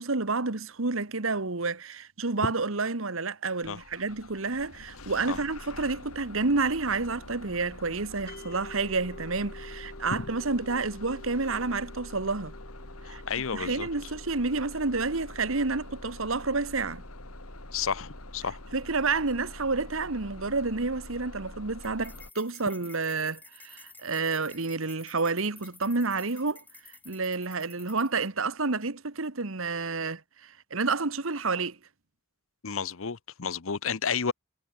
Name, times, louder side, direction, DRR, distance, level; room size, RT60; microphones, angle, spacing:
voice 1, 0.0-12.5 13.1-13.2 13.5-17.0 18.7-26.6 27.0-31.8, right 3 dB, 70° right, 1.4 m, -29 dB
Bus / Engine starting, 3.6-22.3, left 1 dB, 90° left, 5.7 m, -45 dB
sound 1, 8.3-19.4, left 1 dB, 45° left, 4.0 m, -51 dB
voice 2, 13.0-13.9 17.7-18.6 32.6-34.3, left 6 dB, 70° left, 0.8 m, -31 dB
sound 2, 21.8-28.3, left 3 dB, 10° left, 3.4 m, -52 dB
head